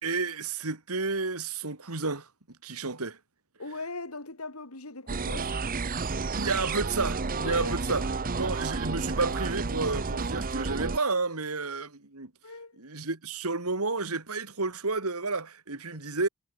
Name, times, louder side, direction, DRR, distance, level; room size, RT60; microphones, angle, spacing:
voice 1, 0.0-3.2 6.3-8.0 8.4-12.3 12.8-16.3, right 3 dB, 80° right, 2.7 m, -31 dB
voice 2, 3.6-5.7 7.4-7.9 12.4-12.8, left 3 dB, 75° left, 3.8 m, -40 dB
sound 1, 5.1-11.0, right 4 dB, 40° right, 0.9 m, -31 dB
head